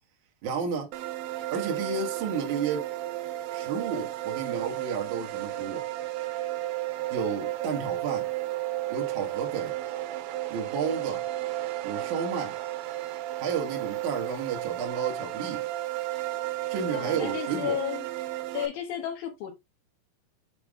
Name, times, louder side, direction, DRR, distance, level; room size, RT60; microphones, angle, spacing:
voice 1, 0.4-0.9 1.5-2.9 3.5-5.9 7.1-8.3 8.9-9.8 10.5-11.2 11.8-12.5 13.4-15.6 16.7-17.8, right 5 dB, 55° right, 2.2 m, -32 dB
sound 1, 0.9-18.7, right 15 dB, 90° right, 3.3 m, -33 dB
voice 2, 16.9-18.1 18.5-19.5, left 10 dB, 85° left, 2.0 m, -33 dB
7.8 x 3.5 x 3.5 m
omnidirectional pair, 5.7 m